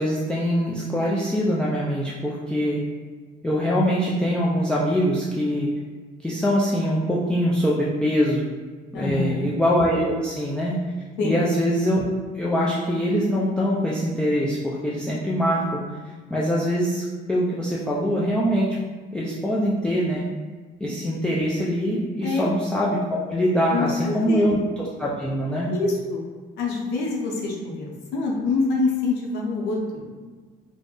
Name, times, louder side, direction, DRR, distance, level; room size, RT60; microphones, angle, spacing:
voice 1, 0.0-2.8 3.4-5.7 6.2-8.4 8.9-10.7 11.2-12.0 12.3-15.8 16.3-18.8 19.1-20.2 20.8-25.7, equal, 5° left, -5 dB, 0.3 m, -23 dB
voice 2, 8.9-9.4 11.2-11.4 22.2-22.5 23.7-24.5 25.7-26.2 26.6-30.0, left 3 dB, 85° left, -1 dB, 0.6 m, -25 dB
2.4 x 2.0 x 3.5 m, 1.4 s
cardioid pair, 110°, 17 cm